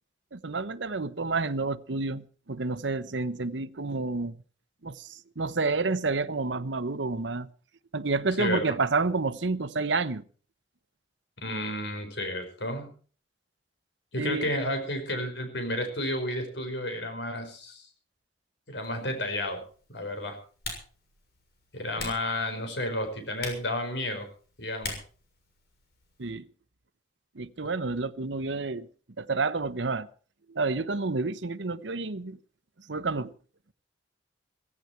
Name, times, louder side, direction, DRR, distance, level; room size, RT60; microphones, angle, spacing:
voice 1, 0.3-4.4 4.8-7.5 7.9-10.2 14.2-14.5 22.0-22.1 26.2-26.4 27.3-28.9 29.2-30.1 30.5-32.4 32.9-33.3, right 3 dB, 85° right, 1.0 m, -29 dB
voice 2, 8.4-8.8 11.4-12.9 14.1-17.9 18.7-19.6 19.9-20.4 21.7-24.3 24.6-25.0, left 1 dB, 75° left, 5.3 m, -31 dB
Typing, 18.8-26.3, left 3 dB, 60° left, 6.6 m, -44 dB
16.5 x 16.5 x 4.5 m
head